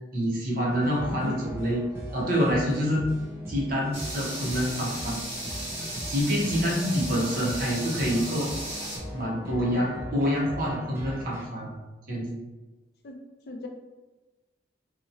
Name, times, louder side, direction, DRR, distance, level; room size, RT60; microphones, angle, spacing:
voice 1, 0.1-1.8 2.1-3.0 3.5-5.2 5.8-8.5 9.1-11.8 12.1-12.4, equal, 50° right, -4 dB, 0.7 m, -27 dB
sound 1, 0.7-11.5, equal, 15° right, 0.4 m, -40 dB
voice 2, 1.0-1.4 7.1-7.6 13.0-13.2 13.5-13.7, left 1 dB, 55° left, 2 dB, 0.4 m, -38 dB
sound 2, 3.9-9.0, right 1 dB, 30° right, 1.1 m, -36 dB
2.8 x 2.0 x 2.6 m, 1.1 s
head